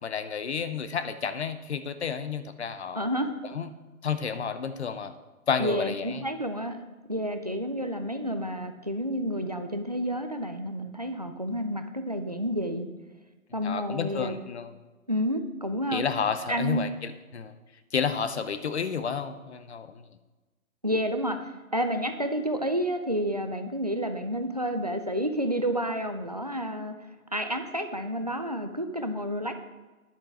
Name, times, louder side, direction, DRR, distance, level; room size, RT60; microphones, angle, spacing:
voice 1, 0.0-3.1 3.5-3.7 4.0-5.1 5.5-6.3 13.6-14.7 15.9-17.5 17.9-20.1, left 6 dB, 50° left, 11 dB, 0.9 m, -31 dB
voice 2, 2.9-3.3 5.6-6.8 7.1-12.9 13.5-14.4 15.1-16.0 16.5-16.8 20.8-26.9 27.3-29.6, equal, 30° right, 7 dB, 0.4 m, -30 dB
10.5 x 7.1 x 5.5 m, 1.2 s
hypercardioid pair, 165°, 43 cm